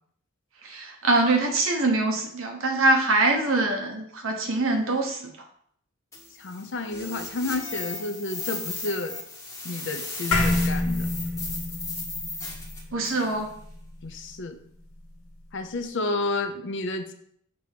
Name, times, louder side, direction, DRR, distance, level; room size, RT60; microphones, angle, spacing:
voice 1, 0.6-5.3 12.9-13.5, right 2 dB, 70° right, 3 dB, 1.1 m, -23 dB
sound 1, 6.1-13.3, left 2 dB, 15° left, 1.5 m, -36 dB
voice 2, 6.4-9.2 9.6-11.1 14.0-14.6 15.5-17.1, left 2 dB, 60° left, 7 dB, 0.7 m, -31 dB
sound 2, 10.3-14.9, left 2 dB, 80° left, 1.5 m, -28 dB
6.6 x 3.0 x 5.1 m, 0.67 s
head